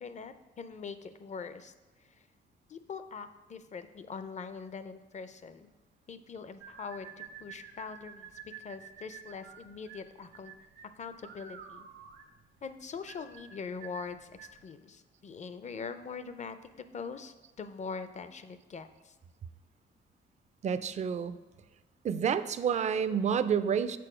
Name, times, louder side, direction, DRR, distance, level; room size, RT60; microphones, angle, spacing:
voice 1, 0.0-1.7 2.7-5.7 6.1-10.5 11.0-11.9 12.6-19.1 23.1-23.2, left 5 dB, 35° left, 11 dB, 0.5 m, -43 dB
sound 1, 6.6-14.6, right 7 dB, 80° right, 0.9 m, -50 dB
voice 2, 20.6-21.4 22.0-24.0, right 7 dB, 35° right, 13 dB, 0.4 m, -29 dB
6.8 x 4.3 x 4.9 m, 1.1 s
cardioid pair, 90°, 20 cm